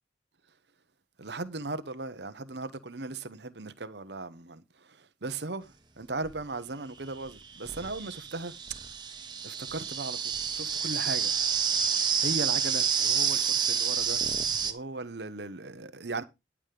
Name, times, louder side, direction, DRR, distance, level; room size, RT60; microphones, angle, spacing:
voice 1, 1.2-8.6 9.4-11.3 12.2-14.2 14.6-16.2, right 3 dB, 75° right, 1.1 m, -37 dB
sound 1, 6.2-6.3 7.2-14.7, right 7 dB, 25° right, 1.3 m, -29 dB
11.0 x 7.3 x 5.0 m
head